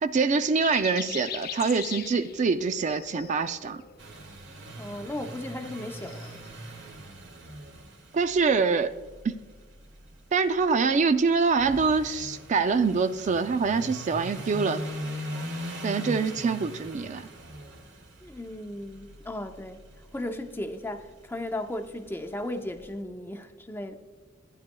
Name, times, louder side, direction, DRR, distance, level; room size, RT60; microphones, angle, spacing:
voice 1, 0.0-3.8 8.1-8.9 9.2-9.3 10.3-14.8 15.8-17.3, right 4 dB, 40° right, 0.3 m, -25 dB
sound 1, 0.6-6.8, left 8 dB, 55° left, 0.6 m, -41 dB
sound 2, 4.0-22.8, equal, 75° right, 1.9 m, -41 dB
voice 2, 4.8-6.4 18.2-19.8 20.1-23.9, left 1 dB, 10° left, 0.6 m, -36 dB
14.5 x 9.5 x 2.2 m
head